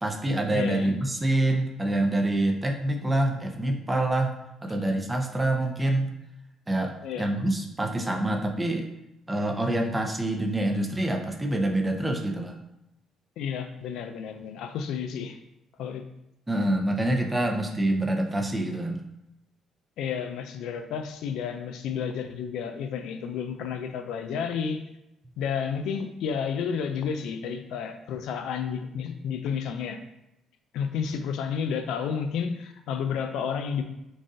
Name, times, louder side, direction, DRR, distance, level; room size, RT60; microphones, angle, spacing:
voice 1, 0.0-4.3 4.6-6.1 6.7-8.8 9.3-12.6 16.5-19.0, right 1 dB, 15° right, 2 dB, 0.6 m, -26 dB
voice 2, 0.5-0.9 7.0-7.3 13.4-15.4 15.8-16.0 20.0-24.8 25.4-30.0 30.7-33.8, left 7 dB, 80° left, 7 dB, 0.4 m, -31 dB
4.0 x 2.5 x 3.6 m, 0.87 s
cardioid pair, 95°, 0 cm